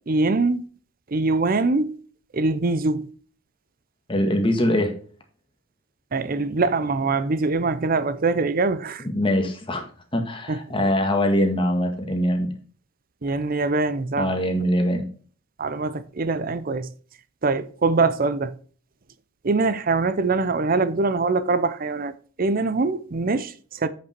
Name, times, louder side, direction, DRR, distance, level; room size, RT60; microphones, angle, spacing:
voice 1, 0.1-0.6 1.1-2.0 2.3-3.1 6.1-9.1 10.5-10.6 13.2-14.6 15.6-16.9 17.4-18.5 19.4-22.1 22.4-23.9, right 3 dB, 40° right, 0.6 m, -23 dB
voice 2, 4.1-4.9 9.0-9.8 10.1-12.5 14.2-15.0, equal, 25° left, 1.6 m, -22 dB
8.2 x 6.0 x 4.5 m
head